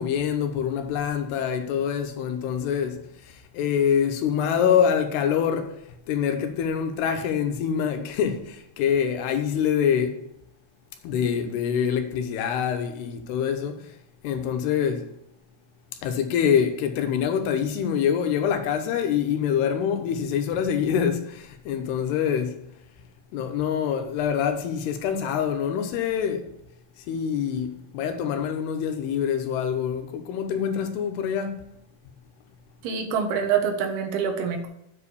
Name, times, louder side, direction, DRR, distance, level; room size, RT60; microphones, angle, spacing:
voice 1, 0.0-5.8 6.1-10.2 11.0-13.9 14.2-15.1 16.0-22.6 23.3-26.5 27.0-31.6, left 8 dB, 85° left, 3.0 m, -25 dB
voice 2, 32.8-34.7, right 7 dB, 80° right, 3.2 m, -25 dB
8.0 x 4.9 x 6.9 m
omnidirectional pair, 4.6 m